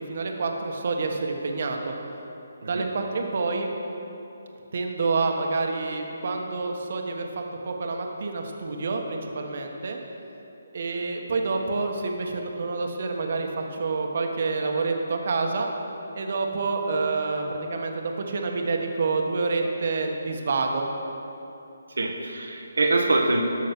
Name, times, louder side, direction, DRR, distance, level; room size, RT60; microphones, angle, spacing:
voice 1, 0.0-1.9 2.6-3.7 4.7-10.0 10.7-15.7 16.1-20.9, right 3 dB, 55° right, 2 dB, 1.3 m, -28 dB
voice 2, 22.0-23.4, right 2 dB, 80° right, 1 dB, 1.1 m, -24 dB
13.5 x 6.4 x 6.0 m, 2.9 s
figure-of-eight pair, 155°, 0 cm